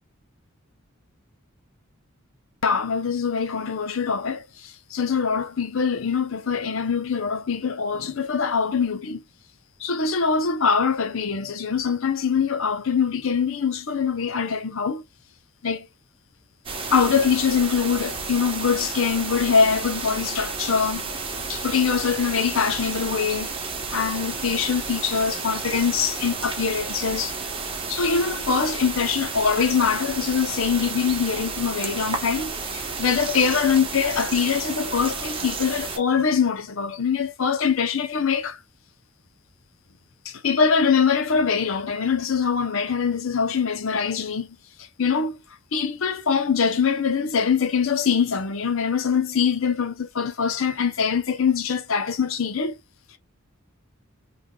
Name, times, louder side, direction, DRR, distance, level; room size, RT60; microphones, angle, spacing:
voice 1, 2.6-9.2 9.8-15.0 15.6-15.9 16.9-21.1 21.5-23.5 23.9-27.3 27.9-38.6 40.2-44.6 45.0-45.4 45.7-52.8, left 6 dB, 65° left, 0.6 m, -23 dB
sound 1, 16.6-36.0, right 4 dB, 25° right, 1.0 m, -32 dB
3.8 x 3.4 x 2.3 m
head